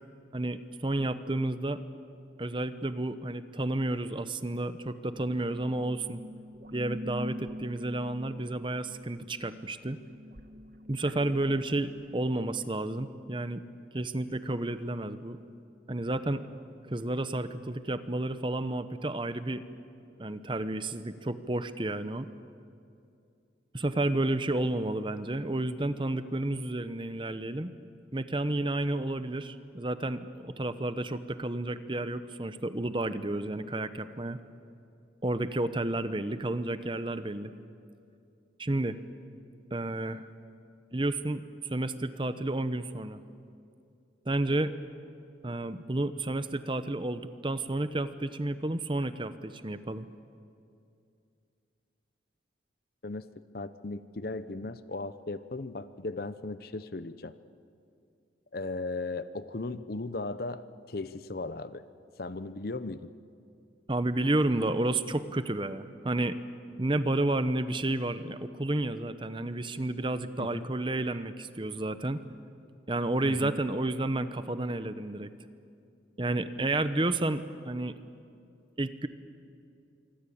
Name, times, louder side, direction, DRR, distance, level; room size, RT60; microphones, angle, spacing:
voice 1, 0.3-1.8 2.4-6.2 6.7-10.0 10.9-13.6 13.9-15.4 15.9-16.4 16.8-19.6 20.2-22.3 23.7-27.7 28.1-34.4 35.2-37.6 38.6-39.0 39.7-40.3 40.9-43.2 44.3-44.7 45.4-50.1 63.9-66.4 66.8-72.2 72.9-75.3 76.2-77.9 78.8-79.1, right 2 dB, 25° right, 12 dB, 0.8 m, -31 dB
sound 1, 5.1-12.1, left 1 dB, 50° right, 1.5 m, -45 dB
voice 2, 53.5-57.3 58.5-61.8 62.2-63.1 70.4-70.7 73.2-73.6, left 2 dB, 50° left, 14 dB, 0.8 m, -37 dB
25.5 x 25.0 x 8.6 m, 2.5 s
head